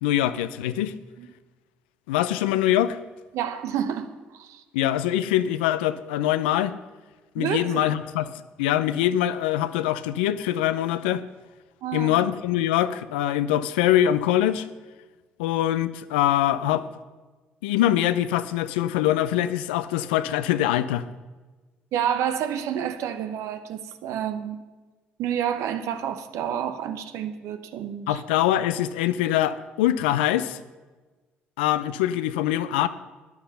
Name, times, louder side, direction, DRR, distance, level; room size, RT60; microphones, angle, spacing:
voice 1, 0.0-0.9 2.1-3.0 4.7-6.7 7.3-8.3 8.6-11.2 11.9-14.7 15.4-16.9 17.6-21.1 28.1-30.6 31.6-32.9, left 12 dB, 85° left, 12 dB, 0.5 m, -23 dB
voice 2, 3.3-4.1 4.3-4.6 7.4-7.9 11.8-12.1 21.9-24.6 25.2-28.2, right 9 dB, 70° right, 9 dB, 1.0 m, -29 dB
12.0 x 10.0 x 5.8 m, 1.3 s
hypercardioid pair, 55°, 5 cm